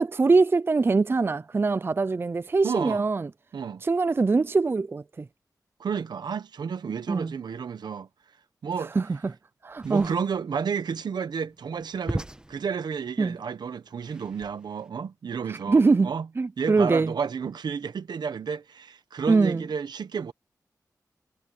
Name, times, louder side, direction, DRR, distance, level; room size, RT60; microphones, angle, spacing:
voice 1, 0.0-3.3 3.8-5.3 7.1-7.3 8.8-9.4 9.6-10.1 13.2-13.4 15.5-17.1 19.3-19.7, right 4 dB, 35° right, 0.4 m, -23 dB
voice 2, 2.6-3.0 3.5-3.8 5.8-8.1 8.6-9.0 9.8-16.3 16.6-20.3, right 6 dB, 80° right, 1.1 m, -31 dB
sound 1, 9.7-14.9, right 1 dB, 10° right, 1.4 m, -39 dB
wide cardioid pair, 95°, 7 cm